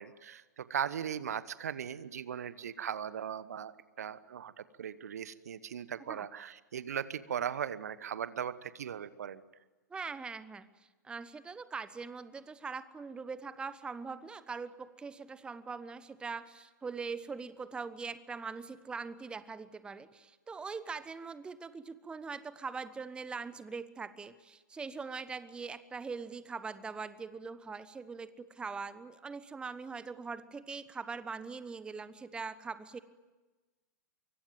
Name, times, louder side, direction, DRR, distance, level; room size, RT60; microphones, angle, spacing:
voice 1, 0.0-9.4, right 8 dB, 60° right, 16 dB, 1.2 m, -38 dB
voice 2, 9.9-10.7 11.0-33.0, right 5 dB, 10° right, 14 dB, 1.1 m, -42 dB
25.0 x 24.0 x 9.3 m, 1.2 s
figure-of-eight pair, 110°, 10 cm